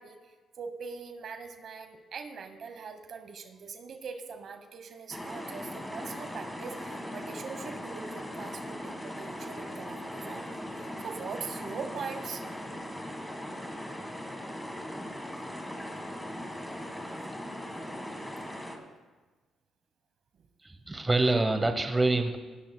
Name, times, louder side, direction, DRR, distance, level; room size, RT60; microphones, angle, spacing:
voice 1, 0.0-12.4 16.5-16.7 20.3-20.5, right 5 dB, 60° right, 8 dB, 1.1 m, -42 dB
sound 1, 5.1-18.8, equal, 10° left, 1.6 m, -39 dB
voice 2, 20.6-22.4, right 2 dB, 20° right, 7 dB, 0.9 m, -26 dB
18.5 x 13.0 x 2.2 m, 1.3 s
cardioid pair, 90°, 0 cm